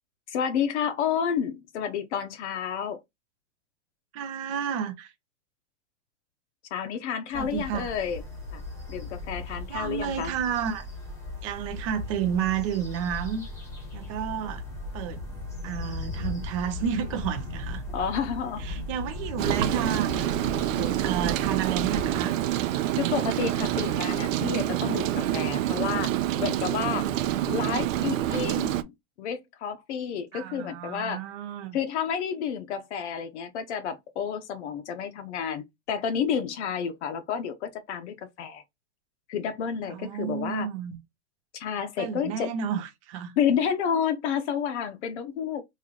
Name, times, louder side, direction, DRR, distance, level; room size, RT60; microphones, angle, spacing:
voice 1, 0.3-3.0 6.7-8.2 8.5-8.6 8.9-10.3 17.9-18.6 22.9-26.1 26.4-27.1 27.5-31.2 31.7-38.6 39.3-40.7 41.5-42.5 43.4-45.6, left 7 dB, 60° left, 0.7 m, -30 dB
voice 2, 4.1-5.1 7.3-7.9 9.7-10.8 11.4-13.4 13.9-14.6 14.9-15.2 15.6-17.8 18.6-22.4 30.3-31.8 39.9-41.0 42.0-43.4, right 8 dB, 30° right, 0.4 m, -31 dB
sound 1, 7.3-22.2, left 2 dB, 5° left, 0.9 m, -37 dB
Rain, 19.4-28.8, right 13 dB, 90° right, 0.6 m, -27 dB
3.1 x 2.6 x 3.7 m
supercardioid pair, 160°, 38 cm